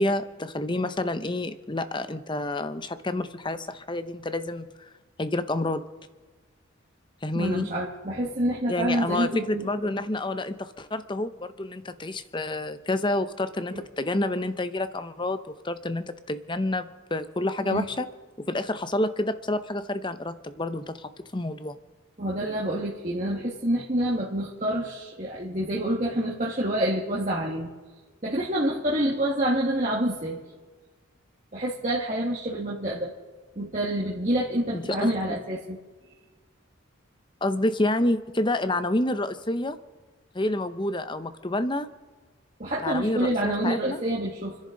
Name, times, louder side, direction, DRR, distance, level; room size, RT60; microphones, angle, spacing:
voice 1, 0.0-4.9 5.2-5.8 7.2-7.7 8.7-15.4 15.6-18.1 18.5-21.8 34.7-35.4 37.4-39.8 40.3-41.9 42.8-44.0, left 1 dB, 20° left, 11 dB, 0.7 m, -28 dB
voice 2, 7.3-9.6 13.7-13.8 17.6-17.9 22.2-27.7 28.2-30.4 31.5-33.1 33.5-35.8 42.6-44.6, right 1 dB, 35° right, -4 dB, 1.8 m, -27 dB
29.0 x 10.5 x 3.9 m, 1.4 s
head